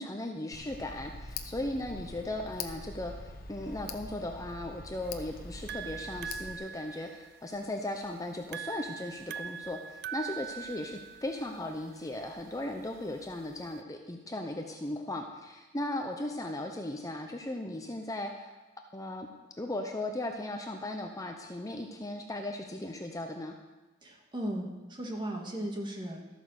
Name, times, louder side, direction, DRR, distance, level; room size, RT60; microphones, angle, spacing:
voice 1, 0.0-18.6 18.9-19.3 19.6-23.5, left 1 dB, 20° left, 3 dB, 0.8 m, -37 dB
Tick, 0.5-6.6, left 3 dB, 50° left, 1.0 m, -44 dB
sound 1, 5.0-13.8, right 8 dB, 55° right, 0.4 m, -43 dB
voice 2, 24.0-26.3, right 1 dB, 25° right, 0 dB, 2.1 m, -36 dB
13.5 x 9.0 x 6.5 m, 1.2 s
head